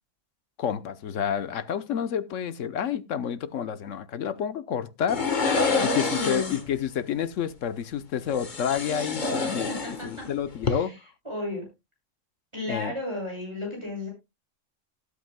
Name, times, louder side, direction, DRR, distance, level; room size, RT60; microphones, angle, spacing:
voice 1, 0.6-5.7 5.9-9.7 10.0-10.9 12.7-12.9, left 8 dB, 80° left, 1.2 m, -29 dB
sound 1, 5.1-6.7 8.3-10.3 10.5-10.7, left 4 dB, 40° left, 1.4 m, -27 dB
voice 2, 5.7-6.5 9.7-10.3 10.6-11.0 11.2-11.6 12.5-14.1, left 1 dB, 20° right, 6.6 m, -33 dB
18.5 x 8.2 x 2.2 m
omnidirectional pair, 1.3 m